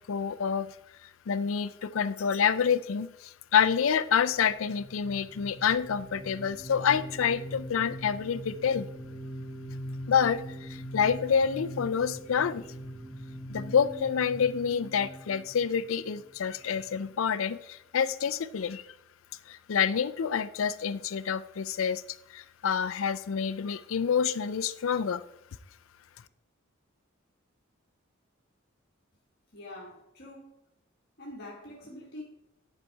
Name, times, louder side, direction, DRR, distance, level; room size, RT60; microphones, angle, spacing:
voice 1, 0.1-0.7 1.3-8.9 10.1-12.6 13.5-18.8 19.5-22.0 22.3-25.2, left 7 dB, 75° left, 0.4 m, -28 dB
sound 1, 4.3-16.7, equal, 15° left, 2.0 m, -42 dB
voice 2, 29.5-30.5 31.2-32.2, left 1 dB, 50° left, 1.3 m, -44 dB
10.5 x 4.1 x 4.5 m
head